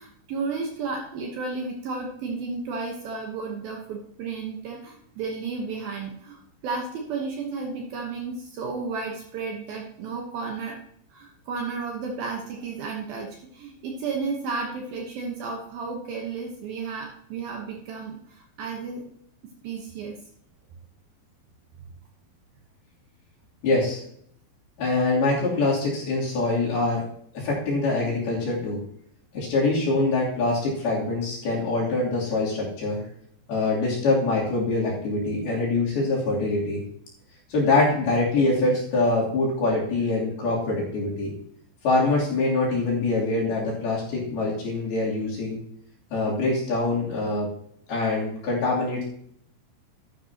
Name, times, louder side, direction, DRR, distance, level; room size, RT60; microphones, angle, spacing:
voice 1, 0.0-10.8 11.1-19.0 19.6-20.2, right 4 dB, 65° right, 1 dB, 2.6 m, -33 dB
voice 2, 23.6-24.0 24.8-27.0 27.3-28.8 29.3-33.0 33.5-36.8 37.5-41.3 41.8-45.6 46.1-47.5 47.9-49.1, left 2 dB, 60° left, -5 dB, 4.9 m, -24 dB
13.0 x 10.5 x 2.9 m, 0.67 s
omnidirectional pair, 5.2 m